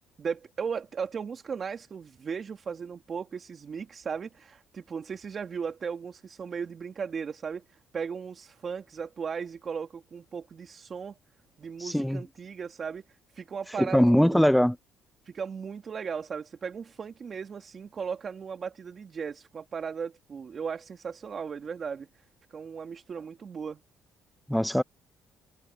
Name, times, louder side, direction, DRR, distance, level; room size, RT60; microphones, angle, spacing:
voice 1, 0.2-11.2 11.6-13.0 13.3-14.4 15.2-22.1 22.5-23.8, right 6 dB, 45° right, 2.4 m, -36 dB
voice 2, 11.8-12.2 13.8-14.8 24.5-24.8, equal, ahead, 0.6 m, -22 dB
cardioid pair, 90°, 0 cm